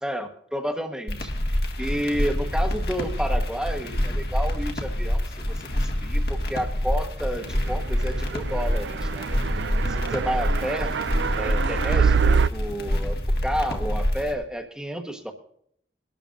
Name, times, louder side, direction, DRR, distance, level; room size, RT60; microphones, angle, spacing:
voice 1, 0.0-1.3 1.8-9.3 9.8-10.9 11.4-13.2 13.4-15.3, equal, 5° right, 4 dB, 1.2 m, -31 dB
sound 1, 1.1-14.3, equal, 55° left, 1.8 m, -26 dB
Wrap it up (Full), 8.0-12.5, right 5 dB, 80° right, 0.4 m, -25 dB
23.0 x 12.5 x 2.6 m, 0.67 s
head